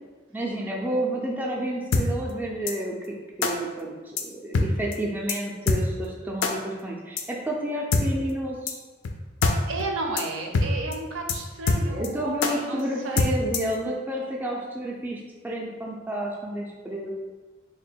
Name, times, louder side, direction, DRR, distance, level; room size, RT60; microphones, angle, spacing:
voice 1, 0.3-3.0 3.4-8.8 11.9-15.2 15.4-17.1, right 1 dB, 10° right, -2 dB, 0.3 m, -30 dB
sound 1, 1.9-2.0 2.7-2.8 3.4-3.5 4.2-4.3 4.5-4.7 4.9-5.0 5.3-5.4 5.7-5.8 6.4-6.5 7.2-7.3 7.9-8.0 8.7-8.8 9.0-9.1 9.4-9.5 9.8-9.9 10.2-10.3 10.5-10.7 10.9-11.0 11.3-11.4 11.7-12.1 12.4-12.5 13.2-13.7, left 3 dB, 70° left, 0.4 m, -23 dB
voice 2, 9.7-13.4, right 2 dB, 85° right, 2 dB, 0.5 m, -32 dB
3.3 x 2.2 x 4.3 m, 1.3 s
head